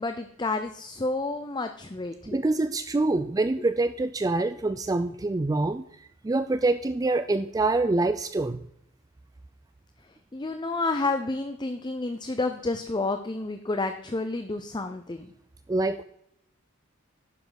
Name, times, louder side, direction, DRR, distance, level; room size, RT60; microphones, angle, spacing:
voice 1, 0.0-2.1 10.0-15.3, left 3 dB, 20° left, 8 dB, 0.6 m, -30 dB
voice 2, 2.3-8.6 15.7-16.0, right 2 dB, 15° right, 11 dB, 0.3 m, -26 dB
11.5 x 9.4 x 4.0 m, 0.74 s
head